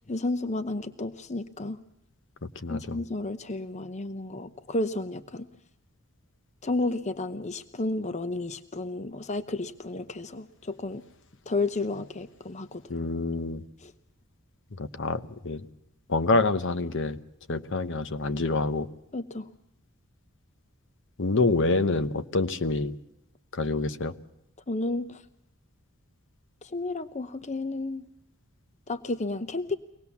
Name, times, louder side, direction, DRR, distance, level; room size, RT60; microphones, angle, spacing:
voice 1, 0.1-1.8 2.7-5.5 6.6-11.0 11.5-12.8 13.8-13.9 19.1-19.5 24.7-25.2 26.6-28.0 28.9-29.8, left 2 dB, 35° left, 12 dB, 0.8 m, -32 dB
voice 2, 2.4-3.0 12.9-13.6 14.8-15.6 16.1-17.2 17.5-18.9 21.2-23.0 23.5-24.1, left 3 dB, 60° left, 11 dB, 1.0 m, -27 dB
24.5 x 19.0 x 7.1 m, 0.82 s
head